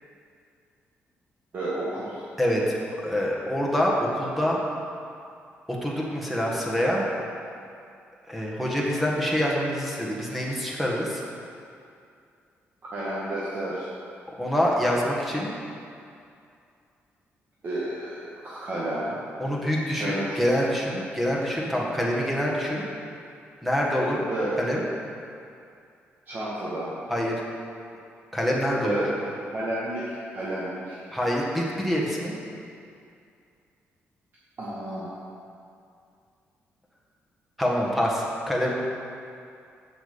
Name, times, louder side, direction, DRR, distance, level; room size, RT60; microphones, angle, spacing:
voice 1, 1.5-2.2 12.9-13.9 17.6-19.2 19.9-20.2 24.3-24.6 26.3-26.9 28.8-31.0 34.6-35.1, right 1 dB, 45° right, -9 dB, 2.0 m, -31 dB
voice 2, 2.4-2.8 3.0-4.6 5.8-7.1 8.3-11.2 14.4-15.5 19.4-22.8 23.6-24.3 24.6-24.8 27.1-27.4 28.3-29.0 31.1-32.3 37.6-38.7, equal, ahead, -3 dB, 1.7 m, -25 dB
7.9 x 7.2 x 6.8 m, 2.5 s
cardioid pair, 140°, 5 cm